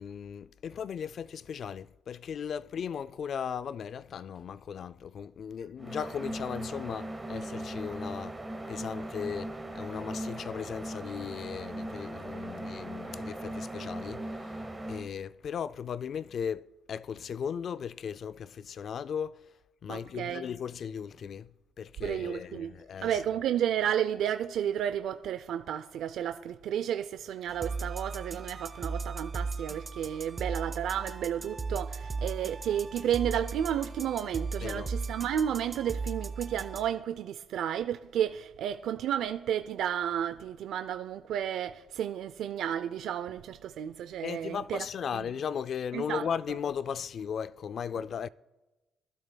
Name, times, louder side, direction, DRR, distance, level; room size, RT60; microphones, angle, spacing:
voice 1, 0.0-8.4 8.7-14.5 14.9-19.4 19.8-21.5 21.8-23.2 34.6-34.9 44.2-48.3, left 7 dB, 60° left, 0.3 m, -37 dB
sound 1, 5.8-15.1, right 1 dB, 15° right, 1.4 m, -39 dB
voice 2, 19.9-20.4 22.0-22.7 23.0-44.9 45.1-45.2 45.9-46.2, right 10 dB, 80° right, 0.4 m, -32 dB
sound 2, 27.5-36.9, right 4 dB, 30° right, 0.8 m, -37 dB
22.0 x 12.0 x 2.3 m
cardioid pair, 90°, 0 cm